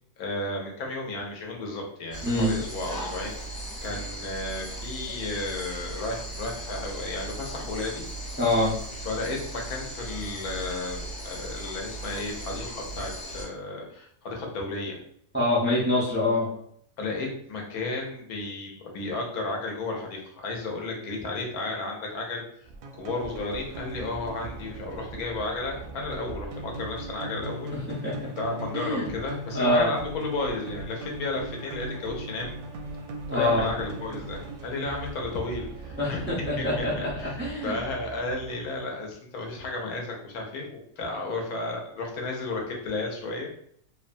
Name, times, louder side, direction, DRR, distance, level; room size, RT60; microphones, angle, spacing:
voice 1, 0.2-8.0 9.1-15.0 17.0-22.4 22.9-27.7 28.4-32.6 33.3-36.2 36.5-37.3 37.6-43.5, left 2 dB, 75° left, 0 dB, 1.1 m, -33 dB
sound 1, 2.1-13.5, right 1 dB, 35° left, 1.0 m, -37 dB
voice 2, 2.2-2.6 8.4-8.7 15.3-16.5 18.5-18.6 27.7-28.3 28.7-29.0 29.5-29.9 33.3-33.6 36.0-37.7, left 1 dB, 10° right, -7 dB, 0.5 m, -25 dB
sound 2, 22.7-38.8, right 3 dB, 70° right, 0.8 m, -39 dB
2.8 x 2.2 x 2.5 m, 0.67 s
omnidirectional pair, 1.6 m